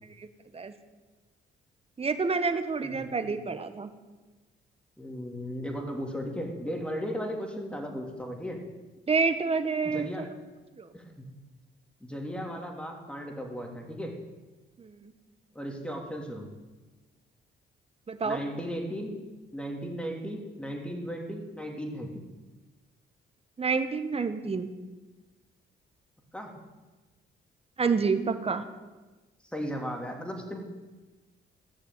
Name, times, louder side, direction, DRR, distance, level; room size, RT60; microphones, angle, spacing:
voice 1, 2.0-3.9 9.1-10.2 10.8-10.9 14.8-15.1 18.1-18.4 23.6-24.7 27.8-28.6, right 4 dB, 30° right, 9 dB, 1.3 m, -28 dB
voice 2, 2.8-3.2 5.0-8.6 9.8-10.3 10.9-11.3 12.0-14.2 15.5-16.5 18.2-19.2 19.5-22.2 26.3-26.5 29.5-30.6, equal, 5° left, 2 dB, 3.1 m, -36 dB
16.0 x 6.7 x 9.3 m, 1.2 s
cardioid pair, 90°, 20 cm